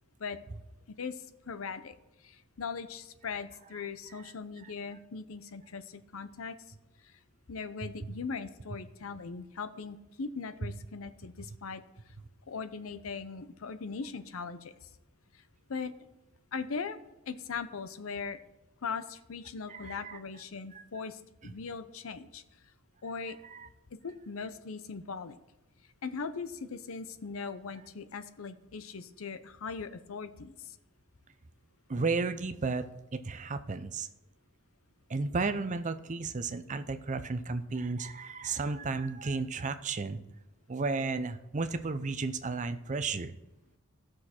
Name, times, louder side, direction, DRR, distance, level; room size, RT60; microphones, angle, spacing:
voice 1, 1.0-2.0 2.2-6.6 7.0-7.1 7.5-11.8 12.5-14.9 15.3-15.4 15.7-15.9 16.5-17.0 17.3-18.4 18.8-22.4 23.0-23.4 24.0-25.4 26.0-30.8, left 5 dB, 80° left, 12 dB, 0.7 m, -39 dB
voice 2, 19.7-20.2 20.7-20.8 21.4-21.5 23.5-23.7 31.9-32.8 33.1-34.1 35.1-40.2 40.7-43.3, right 4 dB, 35° right, 10 dB, 0.6 m, -33 dB
15.0 x 6.4 x 4.4 m, 0.94 s
head